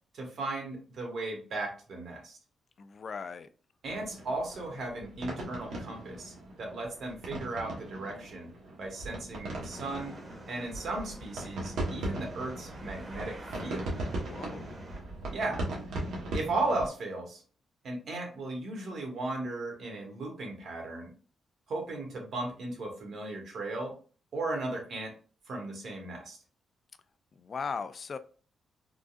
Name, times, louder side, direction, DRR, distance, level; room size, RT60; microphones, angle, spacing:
voice 1, 0.1-2.4 3.8-8.5 8.8-10.2 10.5-13.8 15.3-15.6 16.3-17.4 17.8-21.1 21.7-23.9 24.3-25.1 25.5-26.4, right 2 dB, 60° right, 1.3 m, -36 dB
voice 2, 2.8-3.5 13.9-14.8 27.3-28.2, left 5 dB, 40° left, 0.3 m, -39 dB
sound 1, 3.8-16.9, right 1 dB, 85° right, 1.1 m, -39 dB
sound 2, 9.7-15.0, right 1 dB, 20° right, 0.9 m, -48 dB
3.7 x 2.4 x 2.4 m
cardioid pair, 135°, 0 cm